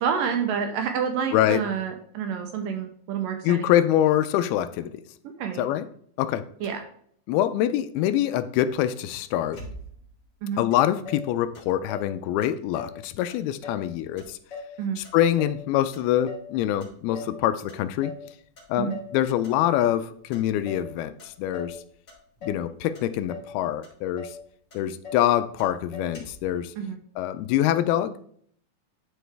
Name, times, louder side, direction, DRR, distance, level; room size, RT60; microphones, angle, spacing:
voice 1, 0.0-3.7 5.2-5.7 6.6-6.8 10.4-10.6 14.8-15.0 18.8-19.0 26.8-27.0, right 7 dB, 80° right, 2.1 m, -28 dB
voice 2, 1.3-1.6 3.4-5.0 5.6-5.9 6.2-6.5 7.3-9.6 10.6-14.4 15.0-18.2 18.7-21.8 22.4-24.3 24.7-26.7 27.2-28.2, left 12 dB, 85° left, 2.4 m, -25 dB
Motor vehicle (road), 9.5-10.2 10.7-10.8 11.0-12.1 12.4-13.0 13.3-13.9 14.2-15.6 15.9-16.5 16.8-17.4 17.7-18.3 18.6-19.1 19.4-20.0 20.3-20.9 21.2-21.8 22.1-22.7 22.9-23.5 23.8-23.9 24.2-24.4 24.7-25.3 25.6-25.7 25.9-26.5, left 3 dB, 35° left, 2.2 m, -40 dB
11.0 x 4.6 x 3.4 m
omnidirectional pair, 4.5 m